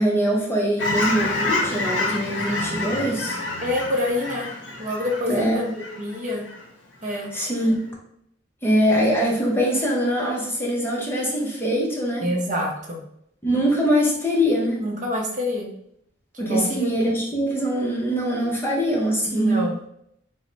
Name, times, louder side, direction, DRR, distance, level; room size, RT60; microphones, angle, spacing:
voice 1, 0.0-3.4 5.3-5.6 7.3-7.7 8.6-12.3 13.4-14.8 16.4-19.7, equal, 10° left, -2 dB, 0.6 m, -22 dB
Fowl / Chirp tweet, 0.8-6.6 7.0-7.3, left 2 dB, 65° left, 0.7 m, -28 dB
voice 2, 3.6-4.5 4.8-6.4 7.0-7.3 12.2-13.0 14.8-15.7 16.4-16.9 19.3-19.8, left 1 dB, 40° right, 0 dB, 0.6 m, -26 dB
3.1 x 2.0 x 3.9 m, 0.72 s
head